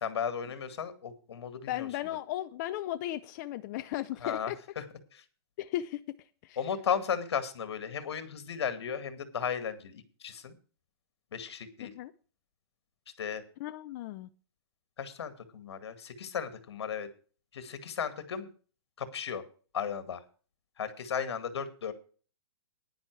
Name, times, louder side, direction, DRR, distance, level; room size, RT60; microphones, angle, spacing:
voice 1, 0.0-1.9 4.2-4.8 5.1-5.2 6.6-10.5 11.3-11.9 13.2-13.4 15.0-17.1 17.5-18.5 19.0-19.4 19.7-20.2 20.8-21.9, left 7 dB, 80° left, 2.0 m, -35 dB
voice 2, 1.7-4.6 5.6-6.2 6.4-6.6 11.9-12.1 13.6-14.3, left 14 dB, 40° left, 0.6 m, -36 dB
10.5 x 10.0 x 4.7 m
hypercardioid pair, 145°, 14 cm